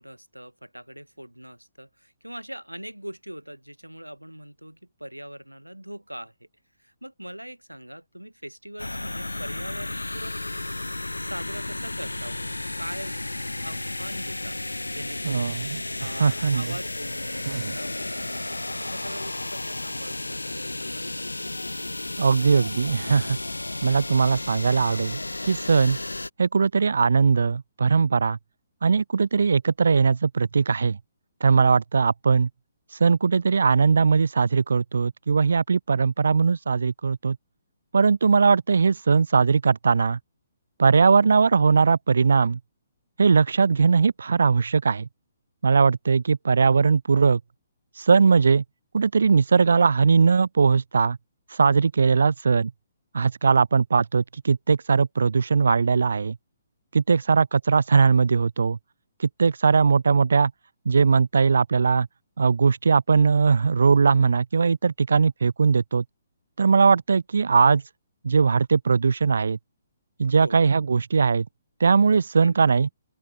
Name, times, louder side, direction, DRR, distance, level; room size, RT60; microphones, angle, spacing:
voice 1, 0.0-6.5 6.8-10.4 11.1-13.2 13.6-14.6 14.9-15.6 16.0-21.2 70.3-70.7 72.4-72.6, equal, 85° right, 6.3 m, -41 dB
sound 1, 8.8-26.3, left 2 dB, 80° left, 0.5 m, -33 dB
voice 2, 16.0-16.6 17.5-17.6 22.2-23.4 23.8-26.0 26.4-28.4 28.8-31.0 31.4-32.5 32.9-37.4 37.9-40.2 40.8-42.6 43.2-45.1 45.6-47.4 47.9-48.6 48.9-51.2 51.5-52.7 53.1-56.4 56.9-58.8 59.2-60.5 60.9-62.1 62.4-66.0 66.6-67.8 68.2-69.6 70.2-71.4 71.8-72.9, right 5 dB, 60° right, 0.5 m, -20 dB
open air
figure-of-eight pair, 130°, 0 cm